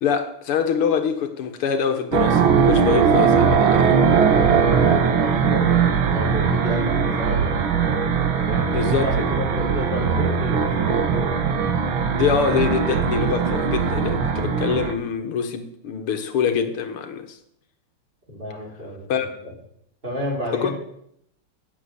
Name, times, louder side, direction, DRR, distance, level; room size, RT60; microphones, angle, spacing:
voice 1, 0.0-4.0 8.5-9.2 12.1-17.4 19.1-19.3 20.6-20.7, left 7 dB, 85° left, 2.3 m, -24 dB
sound 1, 2.1-14.9, right 6 dB, 70° right, 2.1 m, -20 dB
voice 2, 4.8-8.0 8.4-11.0 18.3-19.5 20.0-20.7, left 1 dB, 25° right, 5.3 m, -31 dB
18.5 x 7.6 x 8.1 m
omnidirectional pair, 2.3 m